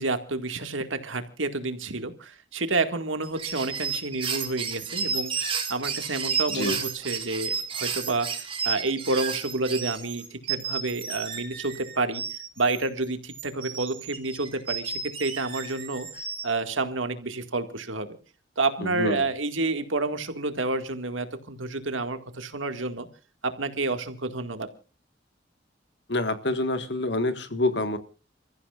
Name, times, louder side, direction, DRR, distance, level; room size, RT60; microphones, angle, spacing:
voice 1, 0.0-8.3 8.6-12.2 12.6-16.1 16.4-18.2 18.6-23.1 23.4-24.7, right 3 dB, 90° right, 2.0 m, -29 dB
sound 1, 3.2-12.8 13.3-16.4, right 6 dB, 30° right, 2.9 m, -32 dB
voice 2, 18.8-19.3 26.1-28.0, left 2 dB, 60° left, 1.7 m, -27 dB
29.5 x 14.5 x 2.5 m
head